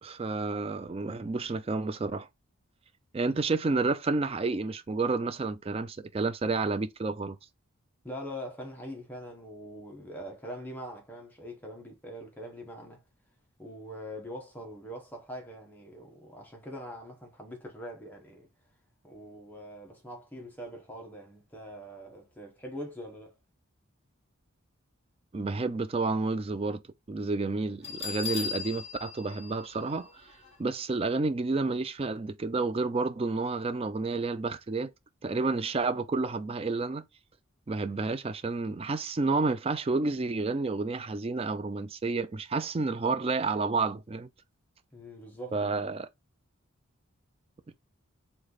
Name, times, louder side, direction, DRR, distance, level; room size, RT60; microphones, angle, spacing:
voice 1, 0.0-2.3 3.1-7.4 25.3-26.8 27.1-30.1 30.6-34.9 35.2-37.0 37.7-44.3 45.5-46.1, right 3 dB, 25° right, 0.3 m, -30 dB
voice 2, 8.0-13.0 13.6-18.5 19.0-23.3 44.9-45.7, equal, 10° left, 1.0 m, -43 dB
Bell, 27.8-30.5, left 6 dB, 30° left, 1.6 m, -38 dB
3.4 x 3.3 x 3.8 m
head